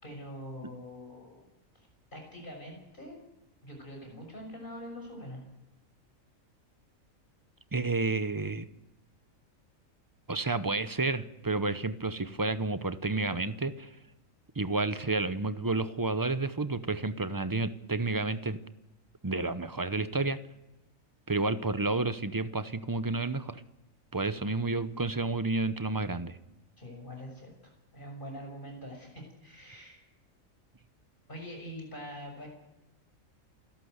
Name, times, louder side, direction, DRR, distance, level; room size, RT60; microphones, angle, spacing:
voice 1, 0.0-1.4 1.8-3.2 3.6-5.4 26.8-30.0 31.3-32.5, equal, 40° left, 2 dB, 6.8 m, -44 dB
voice 2, 7.7-8.7 10.3-13.9 14.6-18.6 19.2-20.4 21.3-23.6 24.1-26.4, right 3 dB, 20° right, 12 dB, 0.7 m, -30 dB
28.0 x 12.0 x 8.1 m, 0.96 s
omnidirectional pair, 1.4 m